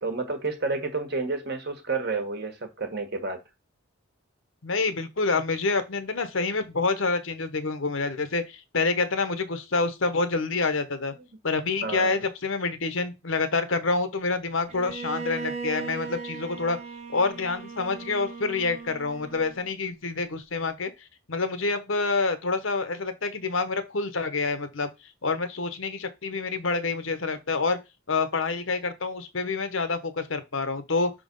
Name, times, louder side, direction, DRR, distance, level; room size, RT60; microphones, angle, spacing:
voice 1, 0.0-3.4 11.8-12.2, right 3 dB, 50° right, 1.5 m, -30 dB
voice 2, 4.6-11.1 11.4-16.8 17.1-20.9 21.3-24.9 25.2-27.8 28.1-31.1, left 3 dB, 65° left, 1.0 m, -27 dB
Bowed string instrument, 14.7-19.7, right 4 dB, 30° right, 1.0 m, -38 dB
5.8 x 3.8 x 5.4 m
head